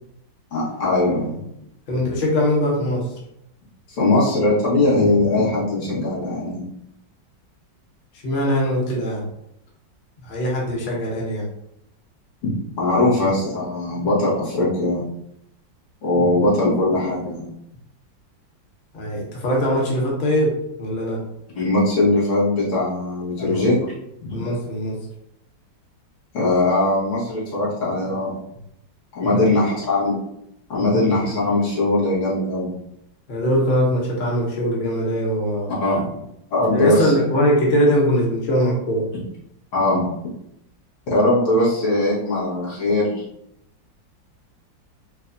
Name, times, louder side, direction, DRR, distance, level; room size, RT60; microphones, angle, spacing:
voice 1, 0.5-1.4 3.9-6.6 12.4-15.0 16.0-17.5 21.6-23.8 24.2-24.3 26.3-28.3 29.2-30.2 30.7-32.7 35.8-36.1 36.5-37.1 39.7-40.0 41.1-43.2, left 2 dB, 80° left, -7 dB, 2.1 m, -20 dB
voice 2, 1.9-3.1 8.2-9.2 10.2-11.5 18.9-21.2 23.4-23.7 24.3-25.0 29.3-29.4 30.9-31.3 33.3-35.7 36.7-39.1, equal, 50° left, -2 dB, 0.6 m, -21 dB
4.5 x 2.3 x 2.6 m, 0.78 s
omnidirectional pair, 2.1 m